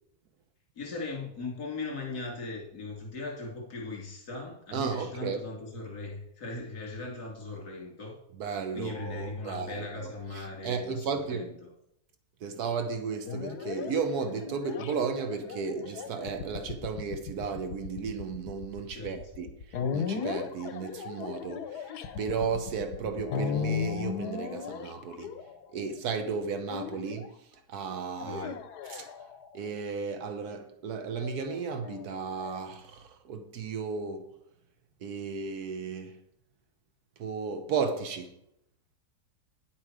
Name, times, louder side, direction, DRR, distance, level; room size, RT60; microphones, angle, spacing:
voice 1, 0.8-8.1 8.7-11.7 18.9-19.1 28.2-28.5, left 3 dB, 70° left, 3.3 m, -39 dB
voice 2, 4.7-5.5 8.4-11.5 12.4-19.5 19.9-21.9 22.2-25.3 25.7-27.3 27.7-28.5 28.9-29.1 29.5-34.2 35.0-36.2 37.2-38.4, right 5 dB, 80° right, 1.4 m, -34 dB
sound 1, 13.3-25.9 26.7-27.3 28.1-29.6 31.2-32.6, left 6 dB, 85° left, 1.4 m, -36 dB
9.9 x 7.6 x 4.9 m
omnidirectional pair, 1.7 m